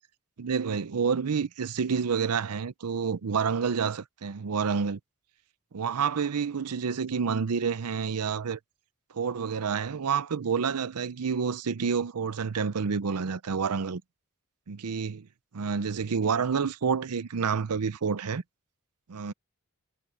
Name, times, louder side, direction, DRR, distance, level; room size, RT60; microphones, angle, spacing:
voice 1, 0.4-5.0 5.7-8.6 9.1-14.0 14.7-15.3 15.5-18.4 19.1-19.3, right 6 dB, 90° right, 0.6 m, -28 dB
head